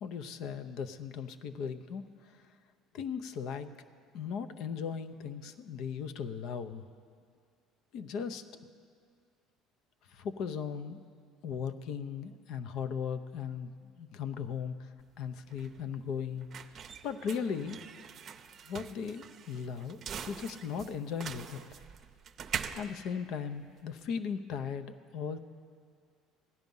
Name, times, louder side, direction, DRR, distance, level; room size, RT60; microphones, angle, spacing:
voice 1, 0.0-2.0 2.3-2.4 2.9-3.7 4.1-6.8 7.9-8.4 10.1-11.0 11.4-16.5 17.0-17.8 18.7-21.6 22.8-25.4, left 7 dB, 65° left, 10 dB, 0.7 m, -37 dB
sound 1, 15.0-24.1, right 7 dB, 45° right, 0.6 m, -44 dB
15.5 x 10.5 x 5.5 m, 2.1 s
supercardioid pair, 105°, 0 cm